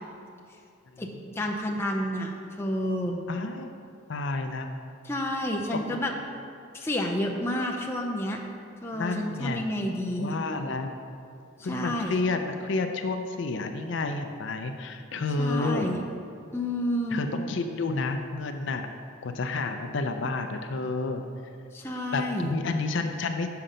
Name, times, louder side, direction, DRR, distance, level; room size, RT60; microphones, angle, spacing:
voice 1, 1.3-3.2 5.0-6.1 6.7-8.4 8.8-10.4 11.7-12.2 15.4-16.0 16.5-17.2 21.7-22.5, left 1 dB, 10° left, 0 dB, 0.5 m, -30 dB
voice 2, 3.3-3.7 4.1-4.7 5.9-6.0 8.9-9.7 10.2-10.9 11.6-15.9 17.1-18.9 19.2-21.2 22.1-23.5, left 3 dB, 65° left, 6 dB, 0.4 m, -30 dB
6.6 x 5.7 x 5.0 m, 2.4 s
head